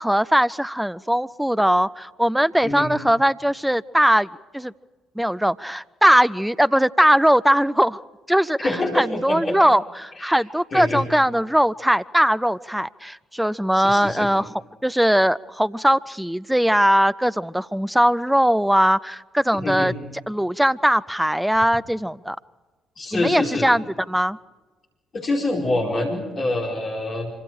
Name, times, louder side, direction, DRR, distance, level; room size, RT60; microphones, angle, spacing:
voice 1, 0.0-4.7 5.2-8.0 8.3-14.5 14.8-19.9 20.3-22.4 23.1-24.4, equal, 5° right, 16 dB, 0.6 m, -20 dB
voice 2, 2.6-2.9 8.6-9.6 10.2-10.4 10.7-11.0 13.7-14.3 19.5-19.9 23.0-23.7 25.1-27.3, left 2 dB, 40° left, -1 dB, 4.9 m, -25 dB
26.0 x 25.0 x 5.0 m, 1.3 s
figure-of-eight pair, 45°, 0 cm